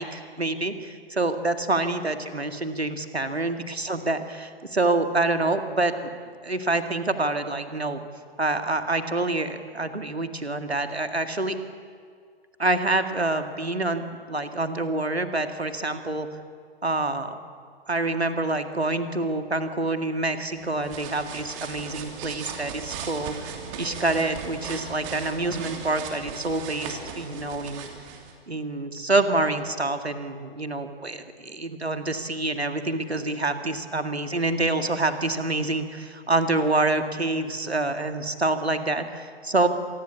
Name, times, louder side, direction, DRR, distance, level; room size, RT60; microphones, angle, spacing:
voice 1, 0.0-6.1 6.4-8.0 8.4-11.6 12.6-14.0 14.3-16.3 16.8-17.4 17.9-27.9 28.5-39.7, right 2 dB, 85° right, 8 dB, 2.0 m, -27 dB
sound 1, 20.6-28.3, right 6 dB, 30° right, 3.0 m, -38 dB
26.0 x 19.5 x 8.4 m, 2.1 s
figure-of-eight pair, 120°, 31 cm